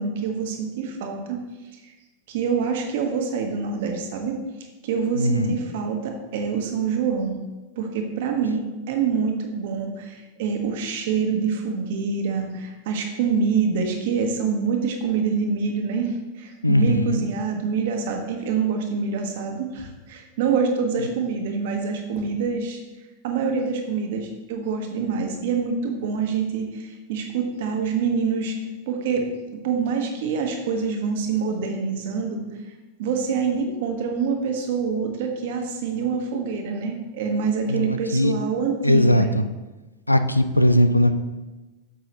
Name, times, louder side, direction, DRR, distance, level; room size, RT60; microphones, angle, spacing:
voice 1, 0.0-1.4 1.7-1.9 2.3-4.4 4.8-7.4 7.8-22.8 23.2-28.6 28.9-29.3 29.5-32.4 33.0-39.3, right 5 dB, 55° right, 3 dB, 1.5 m, -26 dB
voice 2, 5.1-5.6 16.6-17.2 37.7-38.3 38.8-39.4 40.1-41.1, equal, 85° left, 10 dB, 0.5 m, -19 dB
9.5 x 7.1 x 3.2 m, 1.2 s
figure-of-eight pair, 90°, 0 cm